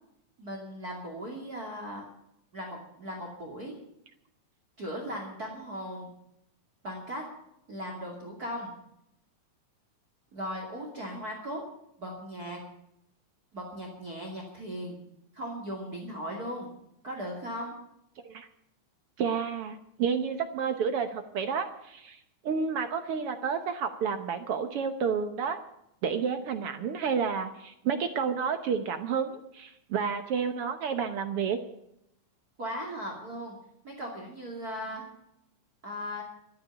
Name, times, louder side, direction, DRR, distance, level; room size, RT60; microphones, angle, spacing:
voice 1, 0.4-2.1 2.5-3.8 4.8-6.1 6.8-7.2 7.7-8.7 10.3-11.6 12.0-12.6 13.5-15.0 15.3-16.7 17.0-17.8 32.6-33.5 33.8-35.1 35.8-36.2, equal, 30° right, 1 dB, 2.8 m, -37 dB
voice 2, 19.2-25.6 26.0-31.6, right 6 dB, 65° right, 8 dB, 1.6 m, -30 dB
13.0 x 9.5 x 10.0 m, 0.79 s
omnidirectional pair, 3.4 m